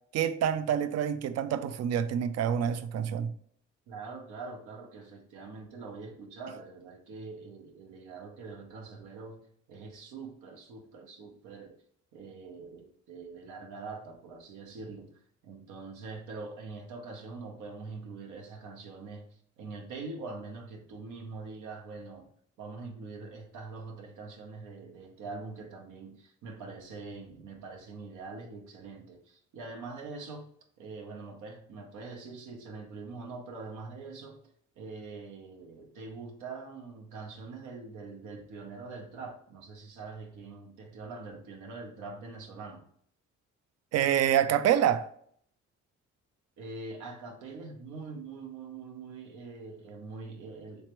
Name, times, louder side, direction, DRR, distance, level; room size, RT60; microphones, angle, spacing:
voice 1, 0.1-3.3 43.9-45.1, right 9 dB, 60° right, 0.4 m, -27 dB
voice 2, 3.9-9.4 9.7-11.8 12.1-15.1 15.4-22.3 22.6-30.5 30.8-34.4 34.8-42.8 46.6-50.8, right 4 dB, 85° right, 0.9 m, -44 dB
3.3 x 3.1 x 3.0 m
cardioid pair, 90°, 30 cm